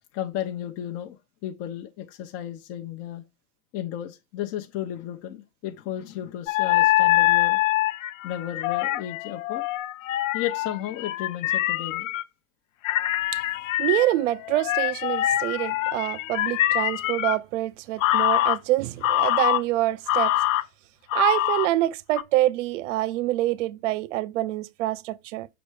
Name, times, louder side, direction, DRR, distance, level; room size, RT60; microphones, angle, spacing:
voice 1, 0.1-3.2 3.7-7.6 8.2-9.7 10.3-12.1, left 11 dB, 35° left, 0.8 m, -34 dB
sound 1, 6.5-12.2 12.8-17.4 18.0-18.6 19.0-19.6 20.1-20.6 21.1-21.7 22.2-22.3, left 15 dB, 65° left, 0.6 m, -24 dB
voice 2, 13.8-20.4 21.1-25.5, right 16 dB, 60° right, 0.6 m, -26 dB
7.1 x 3.3 x 4.7 m
hypercardioid pair, 110°, 43 cm